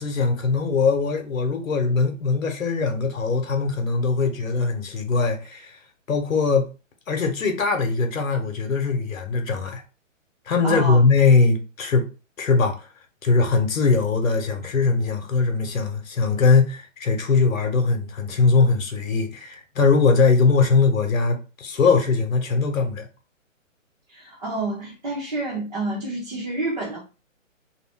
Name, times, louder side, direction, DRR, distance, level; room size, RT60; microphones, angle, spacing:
voice 1, 0.0-5.8 6.1-6.7 7.1-9.8 10.5-12.1 12.4-12.9 13.2-23.1, left 4 dB, 80° left, 1.0 m, -21 dB
voice 2, 10.6-11.0 24.1-27.0, right 2 dB, 35° right, 0.8 m, -29 dB
2.5 x 2.2 x 3.4 m
hypercardioid pair, 170°, 39 cm